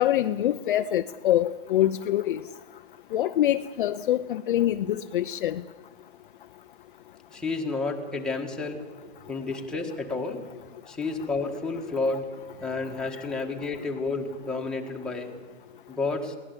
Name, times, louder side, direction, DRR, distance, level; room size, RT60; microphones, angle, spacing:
voice 1, 0.0-2.4 3.1-5.6, left 12 dB, 50° left, 9 dB, 0.6 m, -25 dB
voice 2, 7.3-8.8 9.3-10.4 10.9-12.3 12.6-15.3 15.9-16.4, left 3 dB, ahead, 0 dB, 1.5 m, -30 dB
22.0 x 17.5 x 8.2 m, 1.4 s
hypercardioid pair, 160°, 34 cm